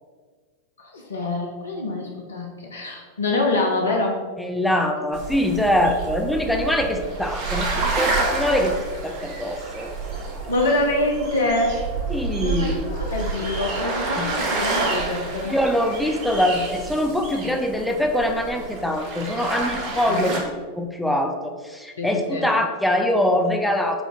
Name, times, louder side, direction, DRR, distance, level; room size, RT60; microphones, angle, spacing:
voice 1, 0.8-4.3 10.5-11.8 12.4-15.6 20.1-20.4 22.0-22.5, left 2 dB, 70° left, 0 dB, 0.6 m, -25 dB
voice 2, 4.4-8.8 9.0-9.9 12.1-12.9 14.2-14.3 15.4-20.4 20.8-24.0, left 1 dB, 5° left, 3 dB, 0.4 m, -23 dB
sound 1, 5.1-20.4, right 3 dB, 45° right, 0.8 m, -29 dB
4.8 x 2.5 x 3.6 m, 1.5 s
figure-of-eight pair, 90°, 0 cm